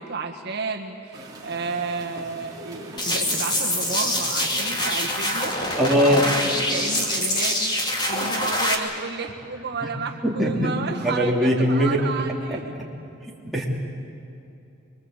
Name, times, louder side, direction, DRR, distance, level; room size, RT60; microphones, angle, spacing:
voice 1, 0.0-12.7, right 4 dB, 50° right, 1 dB, 1.6 m, -32 dB
sound 1, 1.1-7.2, right 1 dB, 20° right, 3.3 m, -41 dB
sound 2, 3.0-8.7, left 1 dB, 20° left, 2.4 m, -25 dB
voice 2, 5.8-6.5 9.8-9.9 10.2-10.8 11.0-12.0 12.5-12.6 13.4-13.7, equal, ahead, -4 dB, 3.2 m, -21 dB
25.0 x 23.0 x 8.2 m, 2.7 s
head